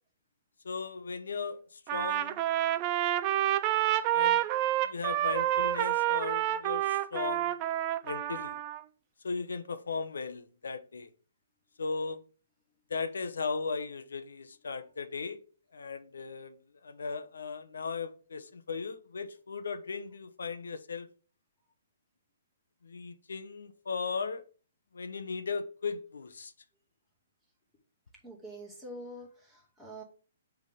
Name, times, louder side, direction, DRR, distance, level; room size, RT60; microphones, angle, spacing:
voice 1, 0.6-2.4 4.1-4.4 4.8-7.6 8.0-8.6 9.2-11.1 11.8-12.2 12.9-15.4 15.7-16.6 16.8-21.1 22.8-24.4 24.9-26.5, left 5 dB, 85° left, 0.9 m, -37 dB
Trumpet, 1.9-8.8, right 13 dB, 30° right, 0.5 m, -29 dB
voice 2, 28.2-30.0, right 1 dB, 5° left, 2.4 m, -46 dB
6.4 x 3.7 x 5.7 m
hypercardioid pair, 150°, 0 cm